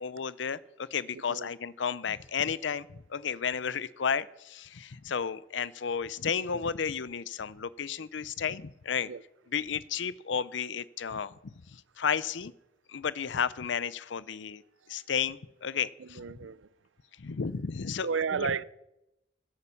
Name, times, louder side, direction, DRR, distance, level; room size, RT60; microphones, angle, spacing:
voice 1, 0.0-9.1 9.5-11.4 11.7-12.5 12.9-14.6 14.9-16.2 17.2-18.5, left 7 dB, 70° left, 0.6 m, -33 dB
voice 2, 16.0-16.7 18.0-18.6, right 6 dB, 80° right, 0.5 m, -32 dB
15.0 x 8.9 x 7.0 m
head